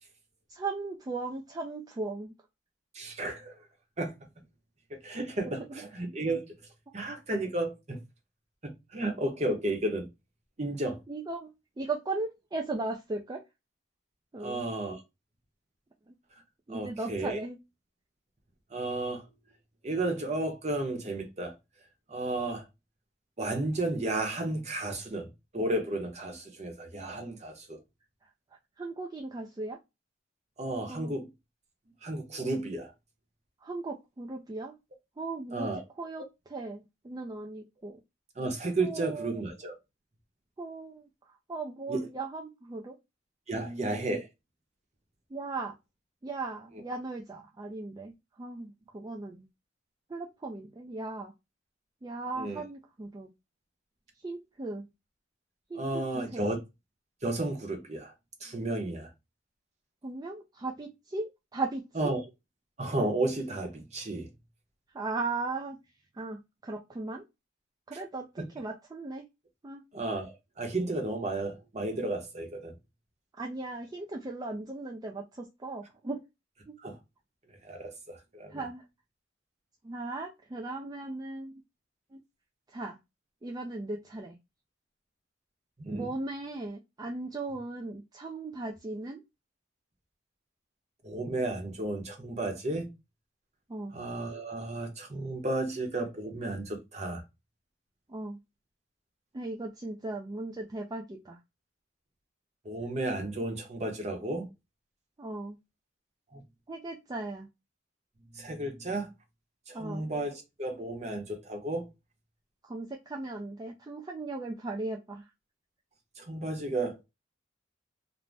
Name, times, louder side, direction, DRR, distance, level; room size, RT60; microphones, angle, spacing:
voice 1, 0.5-2.3 5.5-5.8 11.1-13.4 14.3-14.6 16.1-16.2 16.7-17.6 28.8-29.8 30.9-31.1 33.6-34.7 35.2-35.7 36.0-38.0 38.8-39.4 40.6-43.0 43.5-44.2 45.3-45.7 46.2-49.5 50.1-51.3 52.0-53.3 54.2-54.8 55.7-56.6 60.0-62.1 64.9-65.8 66.2-67.2 67.9-69.3 69.6-69.8 73.4-76.2 76.7-76.8 78.5-78.8 79.8-81.6 82.1-82.2 82.7-83.0 83.4-84.4 85.9-89.2 93.7-93.9 98.1-98.4 99.3-101.4 105.2-105.6 106.7-107.5 109.7-110.1 112.6-115.3, right 3 dB, 20° right, 0.3 m, -37 dB
voice 2, 2.9-3.5 4.0-4.1 4.9-6.4 6.9-8.0 8.6-10.1 10.6-11.0 14.4-15.0 16.7-17.4 18.7-19.3 19.8-21.5 22.1-22.6 23.4-27.8 30.6-31.3 32.0-32.9 35.5-35.8 38.4-39.7 41.9-42.1 43.5-44.3 52.4-52.6 55.7-56.6 57.2-58.1 58.4-59.1 62.0-62.2 62.8-64.3 68.4-68.5 69.9-72.7 76.8-76.9 77.6-78.6 85.8-86.1 91.0-92.9 93.9-97.2 102.6-104.5 106.3-106.4 108.3-109.1 109.7-111.9 116.2-117.0, right 2 dB, 35° right, 0.8 m, -33 dB
2.6 x 2.0 x 3.2 m
head